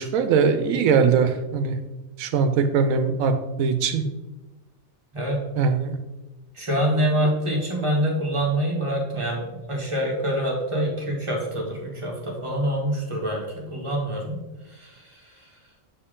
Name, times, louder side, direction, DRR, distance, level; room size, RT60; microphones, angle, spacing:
voice 1, 0.0-1.8 2.2-4.1 5.6-6.0 7.2-7.3, right 5 dB, 80° right, 8 dB, 1.1 m, -21 dB
voice 2, 6.5-14.4 14.7-15.2, equal, 25° right, -2 dB, 1.4 m, -26 dB
7.1 x 4.5 x 3.7 m, 1.1 s
omnidirectional pair, 1.4 m